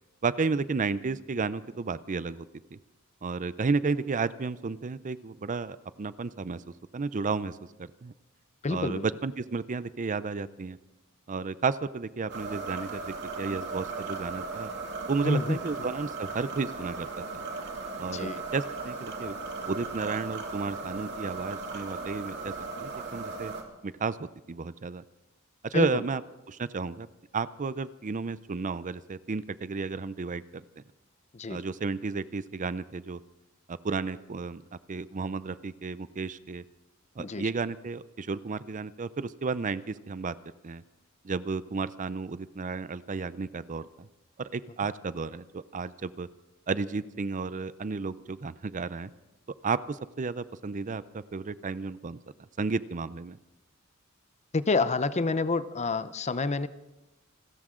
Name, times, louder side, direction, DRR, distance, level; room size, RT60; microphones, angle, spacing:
voice 1, 0.2-2.8 3.2-6.6 6.9-8.1 8.7-10.8 11.3-14.7 15.1-17.4 18.0-19.4 19.7-23.5 23.8-25.0 25.6-26.2 26.5-27.1 27.3-30.8 31.5-33.2 33.7-34.6 34.9-36.6 37.2-40.3 40.6-40.8 41.2-44.1 44.4-46.3 46.7-49.1 49.6-52.2 52.6-53.4, right 4 dB, 35° right, 16 dB, 0.5 m, -32 dB
voice 2, 8.6-9.1 15.2-15.9 18.1-18.4 25.7-26.0 31.3-31.6 37.2-37.5 54.5-56.7, left 3 dB, 30° left, 14 dB, 0.6 m, -28 dB
sound 1, 12.3-23.6, right 4 dB, 55° right, 2.5 m, -37 dB
28.0 x 13.5 x 3.8 m, 1.0 s
head